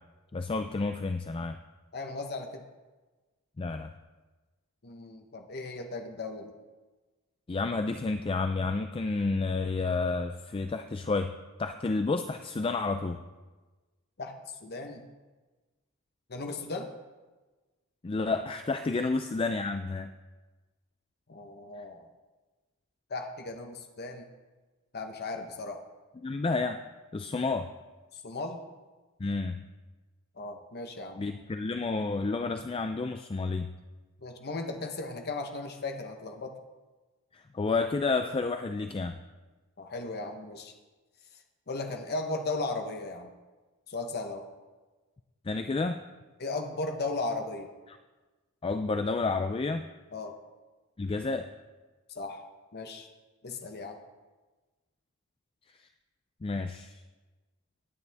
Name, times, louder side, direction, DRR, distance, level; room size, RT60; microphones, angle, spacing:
voice 1, 0.3-1.6 3.6-3.9 7.5-11.3 11.6-13.2 18.0-20.1 26.2-26.8 27.1-27.7 29.2-29.6 31.2-33.7 37.3-39.2 45.5-46.0 48.6-49.9 51.0-51.5 56.4-57.0, left 3 dB, 25° left, 8 dB, 0.4 m, -30 dB
voice 2, 1.9-2.6 4.8-6.5 14.2-14.3 14.6-15.0 16.3-16.9 19.0-19.1 21.3-22.1 23.1-24.3 24.9-25.8 28.1-28.6 30.4-31.2 34.2-36.6 39.8-40.7 41.7-43.3 43.9-44.4 46.4-47.7 50.1-50.3 52.1-53.1 53.4-54.0, left 3 dB, 45° left, 4 dB, 0.9 m, -36 dB
17.5 x 9.6 x 3.5 m, 1.3 s
head